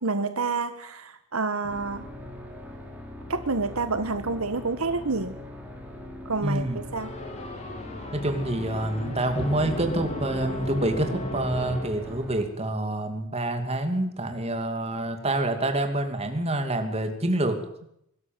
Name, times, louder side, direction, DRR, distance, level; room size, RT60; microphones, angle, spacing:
voice 1, 0.0-2.0 3.3-5.4 6.2-6.6 6.9-7.1, right 3 dB, 75° right, 10 dB, 1.5 m, -28 dB
sound 1, 1.7-12.4, left 1 dB, 5° right, 4.1 m, -41 dB
voice 2, 6.4-6.8 8.1-17.6, right 1 dB, 30° right, 6 dB, 2.6 m, -27 dB
sound 2, 7.0-12.5, left 1 dB, 30° left, 3.5 m, -35 dB
23.0 x 12.5 x 9.3 m, 0.75 s
head